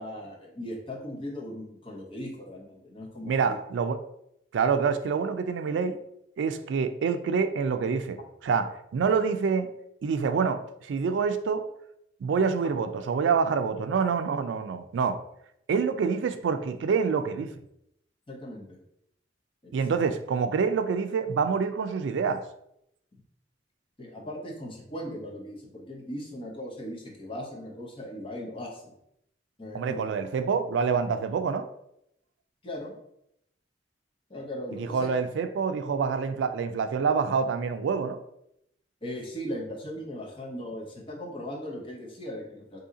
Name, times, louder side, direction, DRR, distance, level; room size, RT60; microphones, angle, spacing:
voice 1, 0.0-3.5 18.3-18.8 19.6-19.7 24.0-28.9 29.6-30.0 32.6-33.0 34.3-35.1 39.0-42.8, equal, 30° left, -1 dB, 0.7 m, -38 dB
voice 2, 3.2-4.0 4.5-6.0 6.4-9.7 10.0-11.6 12.2-15.2 15.7-17.5 19.7-22.4 29.7-31.7 34.7-38.2, right 5 dB, 90° right, 9 dB, 0.3 m, -26 dB
2.7 x 2.7 x 3.7 m, 0.77 s
head